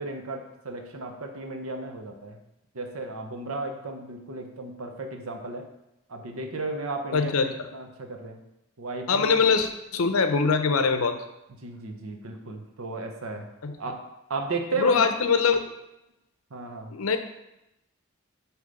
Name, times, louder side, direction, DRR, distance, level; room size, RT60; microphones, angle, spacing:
voice 1, 0.0-2.4 2.7-5.7 6.1-8.4 8.8-9.4 11.6-13.5 13.8-14.0 14.3-15.1 16.5-17.0, right 2 dB, 85° right, 4 dB, 0.8 m, -34 dB
voice 2, 7.1-7.5 9.1-11.2 13.6-13.8 14.8-15.6 16.9-17.2, left 5 dB, 85° left, 8 dB, 0.6 m, -22 dB
6.5 x 3.1 x 5.2 m, 0.89 s
head